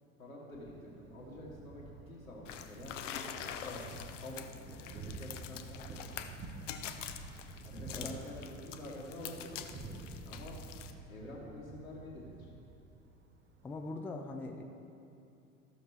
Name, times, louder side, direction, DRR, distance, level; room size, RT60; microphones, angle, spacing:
voice 1, 0.2-3.8 4.2-6.7 7.6-10.6 11.1-12.5, left 1 dB, 80° left, -5 dB, 1.9 m, -48 dB
Thunder, 0.5-13.8, right 3 dB, 25° right, 0.8 m, -50 dB
sound 1, 2.4-10.9, left 9 dB, 65° left, 0.7 m, -46 dB
voice 2, 7.8-8.2 13.6-14.6, left 2 dB, 5° left, 3 dB, 0.4 m, -42 dB
14.5 x 6.5 x 3.3 m, 2.7 s
figure-of-eight pair, 75°, 40 cm